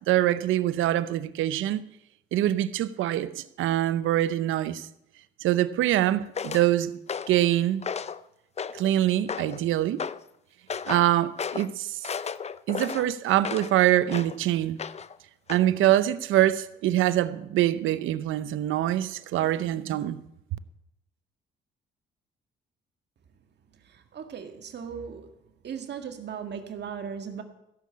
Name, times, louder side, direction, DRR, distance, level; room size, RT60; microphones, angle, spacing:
voice 1, 0.1-1.8 2.3-3.3 3.6-4.9 5.4-6.9 7.3-7.9 8.7-10.0 10.9-12.1 12.7-14.8 15.5-20.2, right 13 dB, 85° right, 0.7 m, -24 dB
sound 1, 6.3-6.7 7.1-7.4 7.8-8.2 8.6-8.9 9.3-9.6 10.0-10.2 10.7-11.1 11.4-11.7 12.0-13.7 14.1-14.4 14.8-15.2 15.5-15.7, left 6 dB, 35° left, 0.6 m, -34 dB
voice 2, 24.1-25.3 25.6-27.4, right 7 dB, 60° right, 1.9 m, -37 dB
15.5 x 7.4 x 8.5 m
cardioid pair, 90°, 20 cm